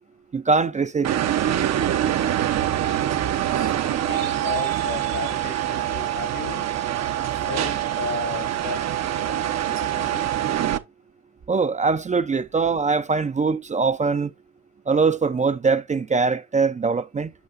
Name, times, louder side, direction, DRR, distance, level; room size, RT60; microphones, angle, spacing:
voice 1, 0.3-1.1 11.5-14.3 14.9-17.3, right 4 dB, 25° right, 0.4 m, -22 dB
sound 1, 1.0-10.8, right 11 dB, 60° right, 0.7 m, -24 dB
voice 2, 3.5-6.7 7.4-8.9 9.1-10.3, left 6 dB, 70° left, 2.1 m, -35 dB
8.0 x 5.5 x 2.5 m
cardioid pair, 90°, 30 cm